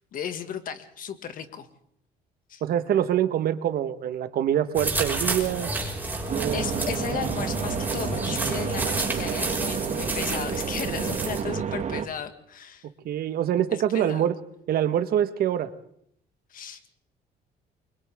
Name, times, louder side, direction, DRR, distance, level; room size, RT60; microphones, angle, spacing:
voice 1, 0.1-1.7 2.5-2.6 6.5-12.9 13.7-14.3 16.5-16.9, left 8 dB, 55° left, 8 dB, 2.1 m, -35 dB
voice 2, 2.6-5.7 6.3-6.6 13.0-14.3 14.7-15.7, right 10 dB, 65° right, 11 dB, 1.5 m, -25 dB
sound 1, 4.7-11.4, right 2 dB, 10° right, 6.1 m, -30 dB
sound 2, 6.3-12.1, right 7 dB, 45° right, 1.6 m, -30 dB
30.0 x 24.0 x 3.7 m, 0.71 s
cardioid pair, 110°, 17 cm